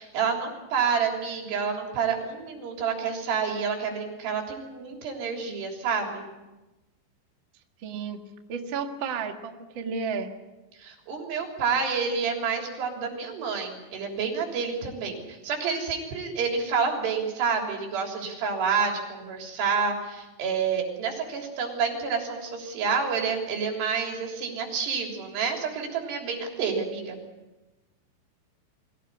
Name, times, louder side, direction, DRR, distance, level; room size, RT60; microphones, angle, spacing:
voice 1, 0.0-6.2 10.7-27.2, right 5 dB, 65° right, 2 dB, 5.5 m, -29 dB
voice 2, 7.8-8.2 8.5-10.3, right 5 dB, 85° right, 4 dB, 1.0 m, -32 dB
23.5 x 17.0 x 9.6 m, 1.1 s
omnidirectional pair, 5.4 m